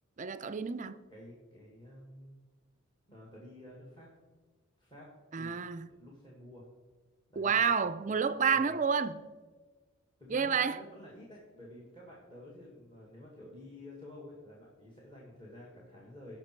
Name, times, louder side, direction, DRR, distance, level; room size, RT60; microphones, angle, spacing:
voice 1, 0.2-1.0 5.3-5.9 7.4-9.1 10.3-10.8, right 6 dB, 35° right, 0.4 m, -29 dB
voice 2, 1.1-2.4 3.1-4.1 4.8-6.7 7.3-7.9 8.5-8.8 10.2-16.4, left 1 dB, 20° left, 1.8 m, -51 dB
17.0 x 5.9 x 4.5 m
head